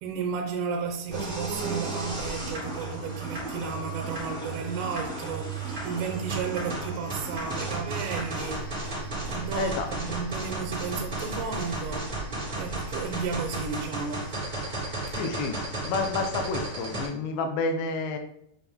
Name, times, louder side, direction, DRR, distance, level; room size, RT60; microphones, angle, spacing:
voice 1, 0.0-8.7 9.3-12.1 12.5-14.3, right 5 dB, 80° right, 2.7 m, -33 dB
sound 1, 1.1-17.1, right 2 dB, 15° right, 1.6 m, -34 dB
Livestock farm animals working animals, 8.3-13.7, right 2 dB, 45° right, 1.4 m, -41 dB
voice 2, 9.6-9.9 15.2-15.6 15.8-18.2, left 4 dB, 85° left, 3.4 m, -29 dB
8.1 x 4.3 x 3.6 m
omnidirectional pair, 5.6 m